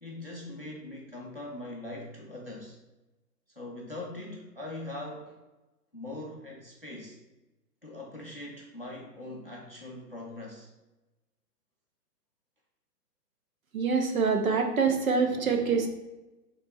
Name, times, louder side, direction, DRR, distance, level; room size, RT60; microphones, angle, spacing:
voice 1, 0.0-2.7 3.6-5.4 5.9-7.2 7.8-10.7, left 2 dB, 40° left, -2 dB, 0.4 m, -41 dB
voice 2, 13.7-15.9, right 5 dB, 55° right, 5 dB, 0.6 m, -25 dB
3.3 x 3.0 x 4.4 m, 1.1 s
hypercardioid pair, 180°, 50 cm